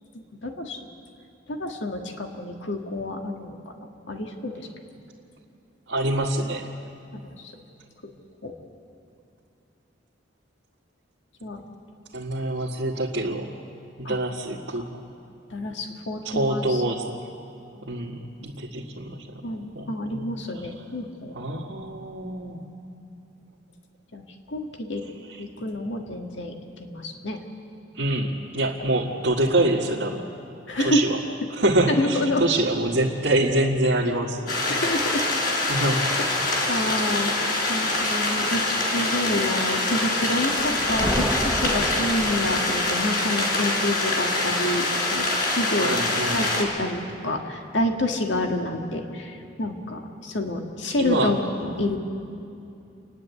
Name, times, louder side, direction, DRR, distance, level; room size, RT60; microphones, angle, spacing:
voice 1, 0.4-0.8 1.5-4.7 7.1-7.5 8.0-8.1 8.4-8.5 11.4-11.6 14.0-14.2 15.5-16.8 17.7-17.8 19.4-21.6 24.1-24.2 24.5-25.0 25.4-27.4 30.7-31.0 31.9-32.4 34.7-35.4 35.8-35.9 36.4-37.4 37.7-46.0 46.3-52.0, left 1 dB, 80° left, 3 dB, 1.7 m, -28 dB
voice 2, 5.9-6.7 12.1-13.5 14.0-14.9 16.2-17.1 17.9-20.3 21.3-22.6 27.9-30.2 30.8-31.2 31.5-34.5 35.7-36.1 45.8-46.4 51.0-51.4, right 1 dB, 80° right, -6 dB, 1.7 m, -25 dB
sound 1, 34.5-46.6, left 2 dB, 50° left, 4.1 m, -25 dB
sound 2, 40.5-43.1, equal, ahead, 0.9 m, -30 dB
29.5 x 10.5 x 8.3 m, 2.6 s
head